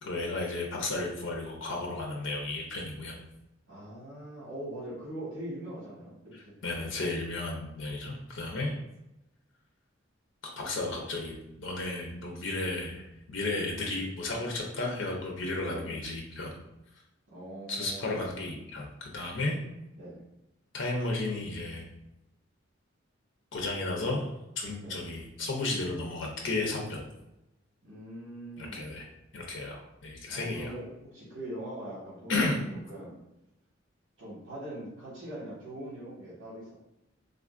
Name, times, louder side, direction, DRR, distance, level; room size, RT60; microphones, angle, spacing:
voice 1, 0.0-3.1 6.3-8.7 10.6-16.5 17.7-19.6 20.7-21.9 23.5-24.3 24.6-27.0 28.6-29.0 29.3-30.7 32.3-32.6, left 2 dB, 75° left, 0 dB, 0.6 m, -33 dB
voice 2, 3.7-6.5 8.5-8.7 15.7-16.0 17.3-18.2 20.0-20.2 24.8-25.0 27.8-28.8 30.3-32.6 32.9-33.1 34.2-36.7, right 1 dB, 85° right, -7 dB, 1.3 m, -42 dB
3.5 x 2.3 x 2.4 m, 0.90 s
head